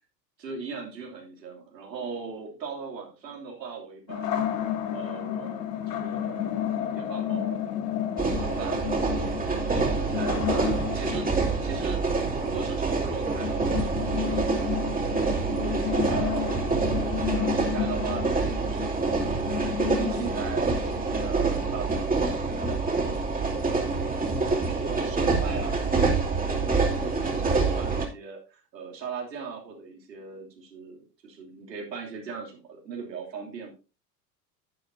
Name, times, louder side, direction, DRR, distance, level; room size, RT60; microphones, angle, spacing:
voice 1, 0.4-4.5 4.9-7.6 8.2-11.3 11.6-23.7 24.5-33.7, right 5 dB, 90° right, 0 dB, 3.2 m, -39 dB
sound 1, 4.1-21.8, left 10 dB, 75° left, 1.7 m, -32 dB
sound 2, 8.2-28.1, right 4 dB, 15° right, 2.7 m, -26 dB
11.5 x 8.9 x 2.7 m, 0.32 s
hypercardioid pair, 90°, 49 cm